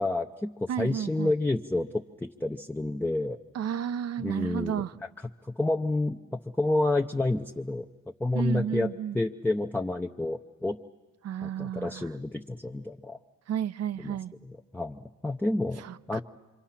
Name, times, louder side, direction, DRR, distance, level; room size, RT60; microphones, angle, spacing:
voice 1, 0.0-3.4 4.2-4.8 5.5-7.8 8.2-10.8 11.4-13.2 14.0-15.8 16.1-16.2, left 2 dB, 5° left, 3 dB, 0.7 m, -29 dB
voice 2, 0.7-1.3 3.5-4.9 8.3-9.2 11.2-12.1 13.5-14.3 15.8-16.2, right 9 dB, 55° right, 15 dB, 0.7 m, -32 dB
26.5 x 25.0 x 5.8 m, 1.3 s
cardioid pair, 90°, 30 cm